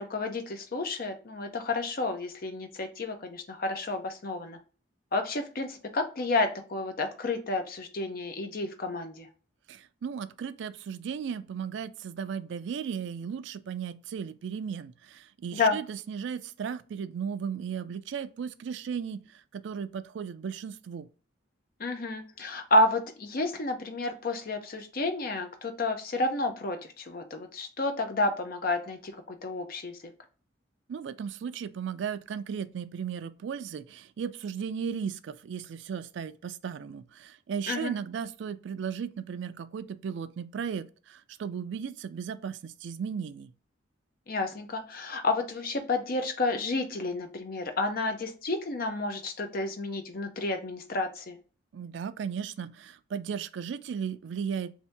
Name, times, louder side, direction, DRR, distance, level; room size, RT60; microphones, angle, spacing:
voice 1, 0.0-4.6 5.1-9.3 15.5-15.8 21.8-30.0 37.7-37.9 44.3-51.4, left 2 dB, 50° left, 0.6 m, -30 dB
voice 2, 9.7-21.1 30.9-43.5 51.7-54.7, right 7 dB, 70° right, 0.3 m, -36 dB
2.7 x 2.7 x 3.3 m
head